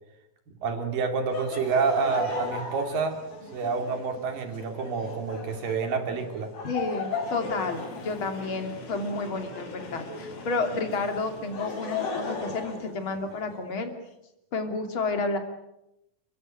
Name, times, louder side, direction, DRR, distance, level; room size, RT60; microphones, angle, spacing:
voice 1, 0.6-3.2 3.5-6.5, right 5 dB, 70° right, 6 dB, 4.5 m, -28 dB
Laughter, 1.3-10.4 11.2-13.6, left 4 dB, 80° left, 8.3 m, -37 dB
voice 2, 6.6-13.9 14.5-15.4, left 3 dB, 35° left, 5 dB, 3.4 m, -31 dB
Train, 6.9-12.0, left 3 dB, 55° left, 4.3 m, -43 dB
29.5 x 15.5 x 9.3 m, 0.87 s
omnidirectional pair, 4.1 m